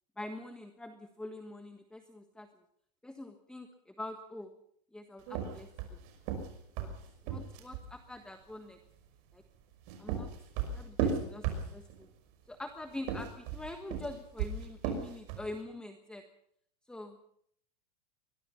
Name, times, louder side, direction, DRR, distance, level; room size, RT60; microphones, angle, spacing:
voice 1, 0.2-2.5 3.0-4.5 4.9-6.0 6.8-6.9 7.2-8.8 9.3-9.4 10.0-10.3 10.7-12.1 12.5-16.2 16.9-17.2, left 1 dB, 5° left, 7 dB, 1.4 m, -44 dB
sound 1, 5.3-7.9 9.6-12.0 12.9-15.5, right 7 dB, 55° right, 5.8 m, -35 dB
23.0 x 21.5 x 5.7 m, 0.68 s
supercardioid pair, 140°, 21 cm